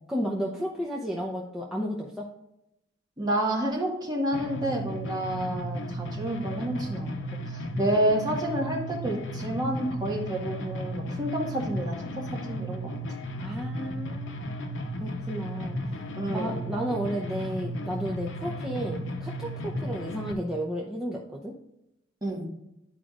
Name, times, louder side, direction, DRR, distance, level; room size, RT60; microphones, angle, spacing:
voice 1, 0.1-2.3 13.4-15.8 16.3-21.5, equal, 5° right, -4 dB, 0.8 m, -33 dB
voice 2, 3.2-7.2 7.5-12.0 12.3-12.9 16.2-16.5 22.2-22.5, right 1 dB, 20° right, -2 dB, 1.7 m, -29 dB
sound 1, 4.3-20.3, equal, 80° left, 0.8 m, -35 dB
11.0 x 4.9 x 2.5 m, 0.88 s
head